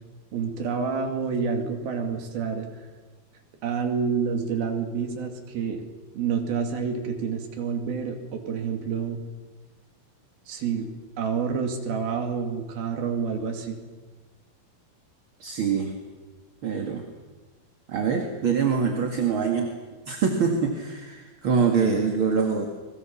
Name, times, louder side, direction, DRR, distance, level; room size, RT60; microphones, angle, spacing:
voice 1, 0.3-2.7 3.6-5.8 6.1-9.2 10.5-10.9 11.2-13.8, right 6 dB, 75° right, 4 dB, 4.3 m, -28 dB
voice 2, 15.4-15.9 16.6-17.0 17.9-19.7 20.1-22.7, right 5 dB, 40° right, 3 dB, 2.2 m, -24 dB
29.5 x 22.0 x 7.2 m, 1.3 s
omnidirectional pair, 4.4 m